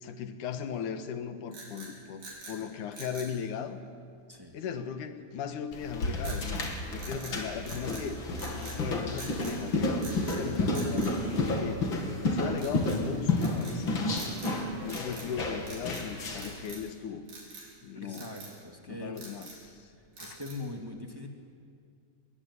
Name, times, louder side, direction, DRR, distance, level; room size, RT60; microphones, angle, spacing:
voice 1, 0.0-3.8 4.5-8.2 8.6-11.8 12.2-14.4 14.8-17.2 17.8-18.3 18.9-19.9 20.2-20.4, left 7 dB, 75° left, 9 dB, 2.9 m, -38 dB
sound 1, 1.5-2.6 2.9-3.4 6.2-6.7 7.0-8.1 8.4-8.8 9.2-9.6 10.0-10.4 10.7-11.9 12.6-13.0 13.4-13.8 14.1-14.6 14.8-15.3 15.6-16.1 16.4-16.9 17.3-17.7 18.1-18.6 19.0-19.7 20.2-20.7, right 3 dB, 75° right, 7.0 m, -46 dB
voice 2, 4.3-4.6 14.0-14.6 18.0-19.2 20.2-21.3, left 2 dB, 10° right, 2 dB, 1.9 m, -42 dB
sound 2, 5.7-16.6, left 2 dB, 40° left, 3.0 m, -31 dB
25.5 x 21.0 x 9.9 m, 2.3 s
omnidirectional pair, 3.7 m